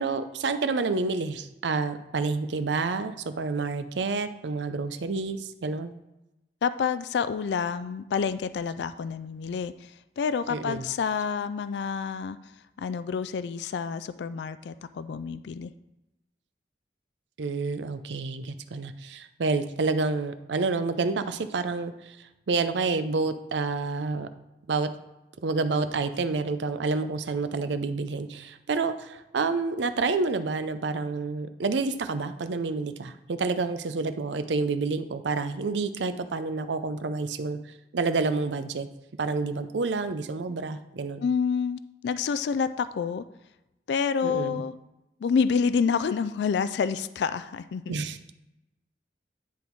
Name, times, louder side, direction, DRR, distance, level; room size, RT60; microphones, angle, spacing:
voice 1, 0.0-5.9 10.5-10.9 17.4-22.2 22.5-24.3 24.7-24.9 25.4-37.6 37.9-38.9 39.2-41.2 44.2-44.6 47.9-48.2, right 4 dB, 85° right, 10 dB, 0.5 m, -29 dB
voice 2, 6.6-12.4 12.8-15.7 41.2-43.2 43.9-44.7 45.2-47.9, left 6 dB, 70° left, 13 dB, 0.3 m, -28 dB
10.0 x 3.5 x 4.6 m, 0.96 s
head